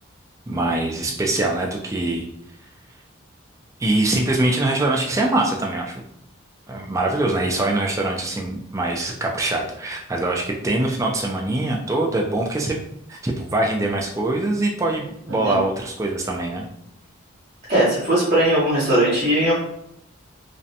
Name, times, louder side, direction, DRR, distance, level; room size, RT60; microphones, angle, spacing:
voice 1, 0.5-2.2 3.8-6.0 6.7-12.8 13.1-16.6, right 2 dB, 15° right, -1 dB, 0.3 m, -23 dB
voice 2, 17.7-19.5, right 1 dB, 35° right, -7 dB, 0.7 m, -19 dB
2.5 x 2.1 x 2.6 m, 0.76 s
head